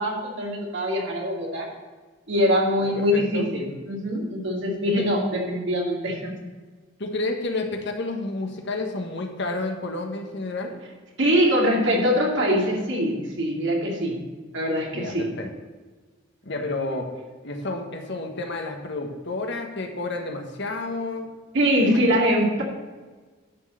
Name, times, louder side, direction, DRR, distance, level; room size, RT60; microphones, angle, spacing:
voice 1, 0.0-1.7 2.3-6.3 11.2-14.2 14.5-15.3 21.5-22.6, equal, 60° right, -1 dB, 2.4 m, -23 dB
voice 2, 2.8-3.5 4.9-5.1 7.0-10.8 14.9-15.5 16.4-17.1 17.4-21.3 21.8-22.2, left 2 dB, 60° left, 3 dB, 1.4 m, -30 dB
11.0 x 4.6 x 7.8 m, 1.4 s
head